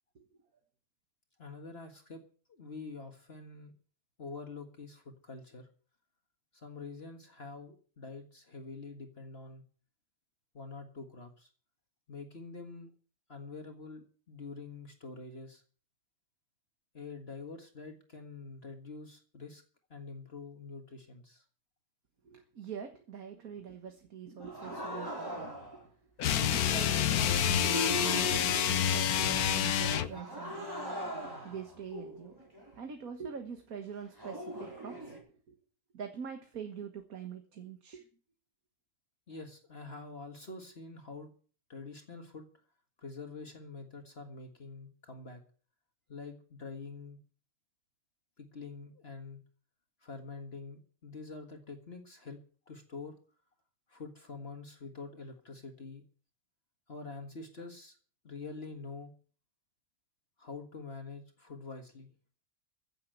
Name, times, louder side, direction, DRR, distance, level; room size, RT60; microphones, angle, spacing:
voice 1, 1.4-2.2 2.5-3.7 4.2-5.7 6.5-9.6 10.5-11.5 12.1-12.9 13.3-15.6 16.9-19.6 19.9-21.4 39.3-41.3 41.7-42.5 43.0-45.4 46.1-47.2 48.4-49.4 50.0-53.2 53.9-56.0 56.9-58.0 58.2-59.1 60.4-62.1, left 4 dB, 45° left, 4 dB, 2.0 m, -46 dB
voice 2, 22.2-25.9 26.2-30.7 31.0-35.1 35.5-35.6 35.9-38.1, right 7 dB, 75° right, 5 dB, 1.9 m, -44 dB
sound 1, 24.4-25.8 27.3-29.0 30.1-32.8 34.2-35.2, equal, 15° right, 4.5 m, -40 dB
sound 2, 26.2-30.2, left 9 dB, 90° left, 1.3 m, -28 dB
15.5 x 7.5 x 7.9 m, 0.42 s
omnidirectional pair, 1.5 m